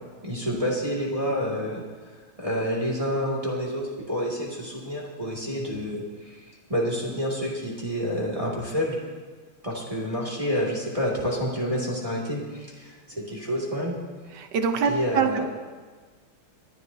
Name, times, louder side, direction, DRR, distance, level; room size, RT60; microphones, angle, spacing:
voice 1, 0.2-1.8 2.4-6.4 6.7-9.0 9.6-14.0 14.8-15.4, equal, 15° right, -4 dB, 2.4 m, -28 dB
voice 2, 14.4-15.4, right 6 dB, 65° right, 7 dB, 1.4 m, -24 dB
24.0 x 11.5 x 2.8 m, 1.4 s
omnidirectional pair, 2.3 m